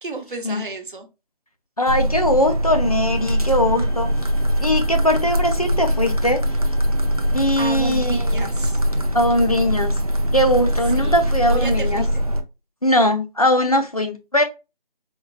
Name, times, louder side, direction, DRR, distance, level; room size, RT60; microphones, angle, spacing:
voice 1, 0.0-1.1 7.6-8.8 11.0-12.2, right 3 dB, 60° right, 0.9 m, -33 dB
voice 2, 1.8-4.1 4.6-6.4 7.3-8.5 9.1-10.0 10.3-12.0 12.8-14.4, left 1 dB, 40° left, 0.5 m, -20 dB
sound 1, 1.9-12.4, equal, 40° right, 0.4 m, -22 dB
Bowed string instrument, 2.7-7.8, left 4 dB, 15° left, 1.2 m, -50 dB
4.4 x 2.8 x 2.3 m
figure-of-eight pair, 165°, 29 cm